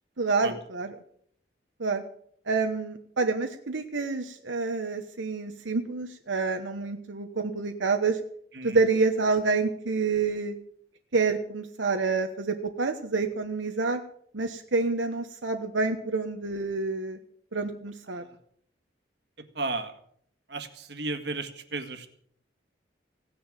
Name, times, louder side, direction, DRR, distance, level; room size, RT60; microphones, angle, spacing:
voice 1, 0.2-0.9 1.8-2.0 2.5-8.2 8.6-10.5 11.1-14.0 14.3-17.2 17.5-18.2, right 4 dB, 85° right, 5 dB, 1.2 m, -28 dB
voice 2, 19.4-19.9 20.5-22.1, right 3 dB, 65° right, 8 dB, 1.8 m, -34 dB
17.0 x 10.0 x 7.5 m, 0.64 s
head